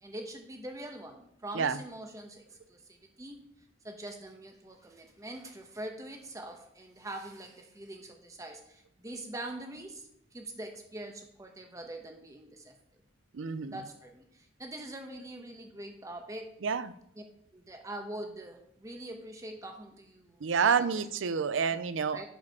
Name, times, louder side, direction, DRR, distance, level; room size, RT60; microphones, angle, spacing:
voice 1, 0.0-2.8 3.2-3.4 3.8-10.1 10.3-12.7 13.7-16.5 17.5-21.8 22.1-22.3, right 1 dB, 15° right, 3 dB, 1.1 m, -43 dB
voice 2, 13.3-13.8 16.6-16.9 20.4-22.3, right 6 dB, 75° right, 14 dB, 0.5 m, -29 dB
11.5 x 4.9 x 4.8 m, 0.73 s
head